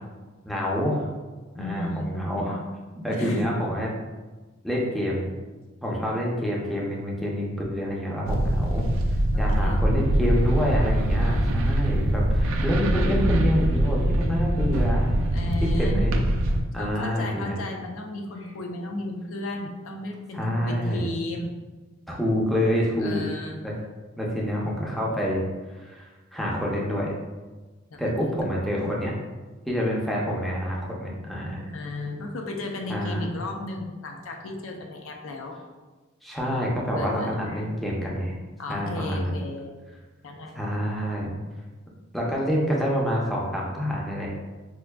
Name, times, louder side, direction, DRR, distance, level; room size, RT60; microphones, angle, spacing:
voice 1, 0.4-1.1 1.5-2.6 3.0-3.9 4.6-5.3 5.8-8.9 9.4-15.1 15.6-16.1 16.7-17.6 20.3-21.1 22.1-23.2 23.6-23.7 24.2-25.4 25.7-27.1 28.0-29.1 29.7-31.6 32.9-33.3 36.2-38.3 38.7-39.4 40.5-41.3 42.1-44.3, equal, ahead, -4 dB, 0.5 m, -27 dB
voice 2, 1.6-2.1 3.1-3.5 9.3-9.8 15.3-16.1 16.8-21.5 23.0-23.6 27.9-28.3 31.7-35.6 37.0-37.6 38.6-39.8 40.2-40.6, left 2 dB, 85° left, 2 dB, 0.5 m, -34 dB
sound 1, 8.3-16.6, right 1 dB, 75° right, 0.3 m, -23 dB
4.4 x 2.4 x 2.2 m, 1.3 s
head